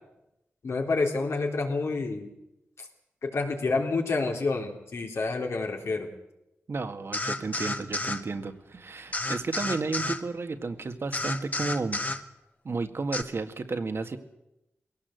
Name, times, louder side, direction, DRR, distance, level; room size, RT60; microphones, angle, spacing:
voice 1, 0.6-2.3 3.2-6.1, left 3 dB, 75° left, 1 dB, 3.8 m, -28 dB
voice 2, 6.7-12.0 12.6-14.2, right 3 dB, 65° right, 7 dB, 1.9 m, -32 dB
sound 1, 7.1-8.2 9.1-10.2 11.1-12.2 13.1-13.2, left 2 dB, 35° left, 1.7 m, -31 dB
21.5 x 17.5 x 8.0 m, 0.89 s
cardioid pair, 55°, 5 cm